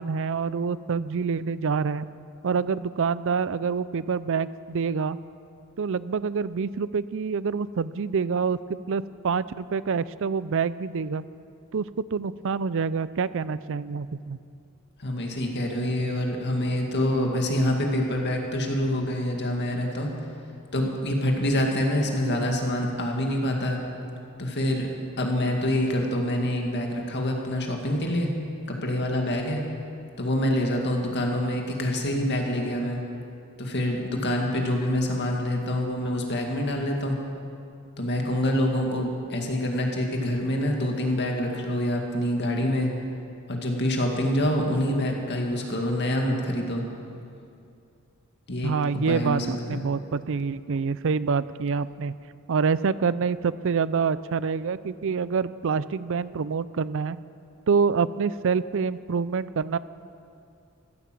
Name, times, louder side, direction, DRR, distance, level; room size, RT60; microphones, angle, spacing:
voice 1, 0.0-2.1 2.4-5.2 5.8-11.2 11.7-14.4 48.6-52.1 52.5-57.2 57.7-59.8, right 5 dB, 60° right, 17 dB, 0.5 m, -26 dB
voice 2, 15.0-20.1 20.7-23.8 24.4-24.9 25.2-28.3 28.7-29.6 30.2-33.0 33.6-37.2 38.0-42.9 43.5-46.8 48.5-49.8, left 1 dB, 50° left, 1 dB, 2.2 m, -26 dB
15.0 x 12.0 x 7.7 m, 2.5 s
head